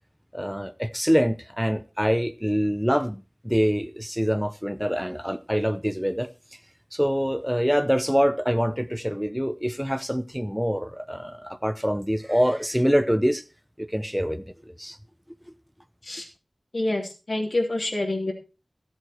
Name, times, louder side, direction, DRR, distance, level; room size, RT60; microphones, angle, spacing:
voice 1, 0.3-6.3 6.9-13.4 13.8-15.0, equal, ahead, 0.7 m, -25 dB
voice 2, 16.7-18.3, left 2 dB, 65° left, 3.1 m, -27 dB
14.0 x 7.9 x 4.5 m
wide cardioid pair, 65°, 0 cm